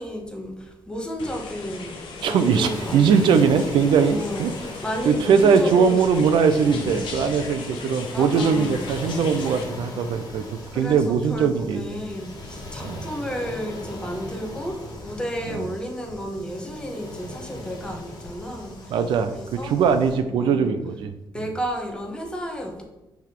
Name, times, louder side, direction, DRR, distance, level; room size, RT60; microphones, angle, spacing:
voice 1, 0.0-3.3 4.1-7.2 8.1-8.9 10.7-19.0 19.3-19.7 20.2-20.7 21.3-22.8, equal, 10° left, 3 dB, 1.0 m, -33 dB
sound 1, 1.2-9.6, left 4 dB, 80° left, 1.0 m, -37 dB
Waves surf, 2.1-20.2, left 1 dB, 50° left, 1.5 m, -39 dB
voice 2, 2.2-4.5 5.1-10.4 10.7-12.0 12.8-13.0 15.5-15.6 18.9-19.3 19.6-21.1, right 6 dB, 80° right, 9 dB, 0.5 m, -20 dB
5.7 x 3.5 x 4.6 m, 0.97 s
cardioid pair, 115°, 8 cm